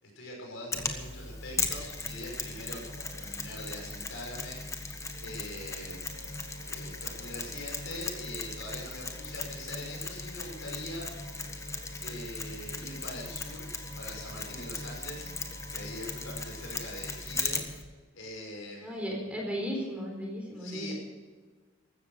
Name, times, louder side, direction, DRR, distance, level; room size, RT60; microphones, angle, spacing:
voice 1, 0.0-4.6 5.2-6.0 6.7-11.1 12.0-13.7 14.0-15.3 15.7-17.6 18.1-19.1 20.6-20.9, left 1 dB, 65° left, 0 dB, 6.0 m, -42 dB
Mechanisms, 0.7-17.8, left 3 dB, 15° left, 1.3 m, -38 dB
Wind instrument woodwind instrument, 4.9-17.6, right 1 dB, 70° right, 4.2 m, -54 dB
voice 2, 18.8-20.9, equal, 5° right, -1 dB, 4.1 m, -35 dB
15.5 x 13.5 x 6.6 m, 1.4 s
head